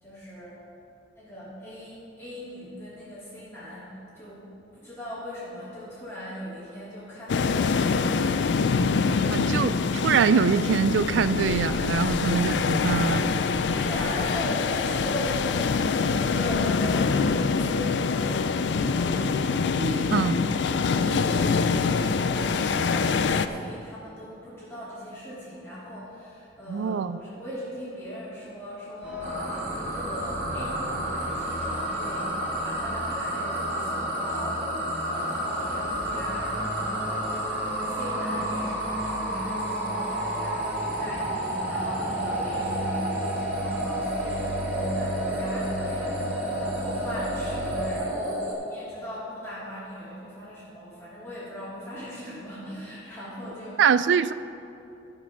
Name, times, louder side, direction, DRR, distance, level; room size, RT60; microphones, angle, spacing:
voice 1, 0.0-0.6 1.1-4.5 4.7-7.9 8.2-8.5 13.7-15.5 16.1-20.8 21.0-21.5 21.8-29.3 29.7-32.3 32.6-34.7 35.0-37.2 37.6-44.6 44.9-53.8, equal, 15° left, -11 dB, 2.6 m, -39 dB
sound 1, 7.3-23.5, left 5 dB, 70° left, 0.4 m, -25 dB
voice 2, 9.3-13.3 20.1-20.4 26.7-27.2 53.8-54.3, right 6 dB, 75° right, 14 dB, 0.3 m, -23 dB
sound 2, 29.0-47.9, equal, 10° right, 1.5 m, -36 dB
sound 3, 29.2-48.5, right 1 dB, 40° right, 1.6 m, -31 dB
12.0 x 5.4 x 6.0 m, 2.8 s
head